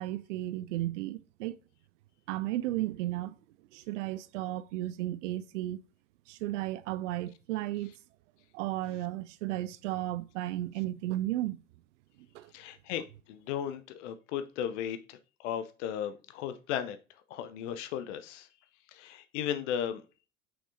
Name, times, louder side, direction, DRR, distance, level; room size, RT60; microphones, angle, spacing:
voice 1, 0.0-1.6 2.3-3.3 3.7-5.8 6.3-7.9 8.5-11.6 12.3-12.5, right 15 dB, 60° right, 0.5 m, -34 dB
voice 2, 12.5-17.0 17.3-18.5 18.9-20.0, left 9 dB, 60° left, 0.7 m, -36 dB
6.1 x 5.9 x 2.7 m
figure-of-eight pair, 65°, 41 cm